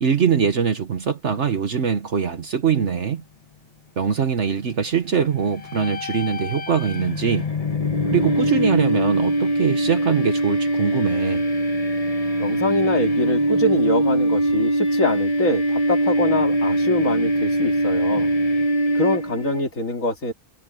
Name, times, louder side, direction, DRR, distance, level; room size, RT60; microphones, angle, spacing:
voice 1, 0.0-3.2 4.0-7.5 8.1-11.4, right 6 dB, 60° right, 1.4 m, -22 dB
sound 1, 5.6-19.6, right 1 dB, 30° left, 1.3 m, -22 dB
voice 2, 12.4-18.3 18.9-20.3, left 2 dB, 75° left, 2.9 m, -24 dB
omnidirectional pair, 1.4 m